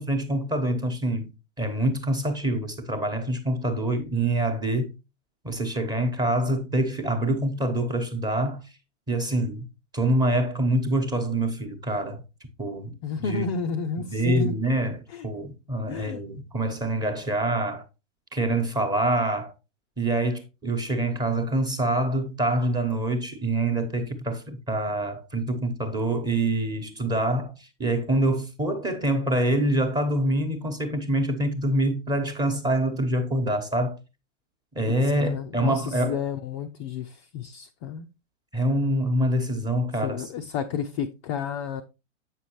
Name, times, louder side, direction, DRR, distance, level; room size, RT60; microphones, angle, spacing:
voice 1, 0.0-4.9 5.4-8.7 9.1-9.6 9.9-12.2 12.6-13.5 14.0-17.9 18.3-19.5 20.0-34.0 34.7-36.2 38.5-40.3, right 1 dB, 10° right, 1.1 m, -26 dB
voice 2, 13.0-14.5 15.1-15.2 15.9-16.2 35.2-38.1 40.0-41.8, left 6 dB, 25° left, 0.4 m, -31 dB
8.2 x 6.2 x 3.0 m
figure-of-eight pair, 105°, 39 cm